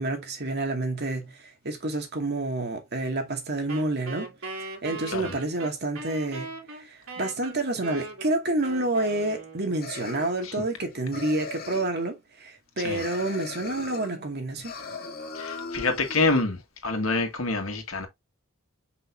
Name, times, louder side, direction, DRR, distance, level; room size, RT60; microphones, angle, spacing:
voice 1, 0.0-4.3 4.6-6.5 6.8-14.7, right 2 dB, 50° right, 2.2 m, -29 dB
Wind instrument woodwind instrument, 3.7-10.0, right 2 dB, 85° right, 2.8 m, -39 dB
sound 1, 9.8-10.8 11.1-12.0 12.9-14.1 14.6-16.4, left 4 dB, 45° left, 2.1 m, -38 dB
voice 2, 15.3-16.6 16.8-18.1, left 3 dB, 75° left, 1.9 m, -26 dB
6.5 x 5.5 x 2.7 m
head